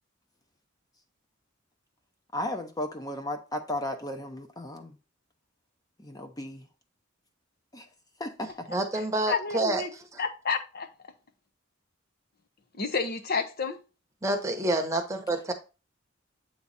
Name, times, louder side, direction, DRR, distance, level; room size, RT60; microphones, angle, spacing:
voice 1, 2.3-5.0 6.0-6.7 7.7-7.9 8.2-8.7, left 1 dB, 20° left, 0.8 m, -35 dB
voice 2, 8.7-10.2 14.2-15.5, right 2 dB, 15° right, 1.0 m, -28 dB
voice 3, 9.3-9.9 10.2-10.9 12.7-13.8, left 5 dB, 50° left, 0.9 m, -30 dB
8.3 x 3.1 x 4.1 m
head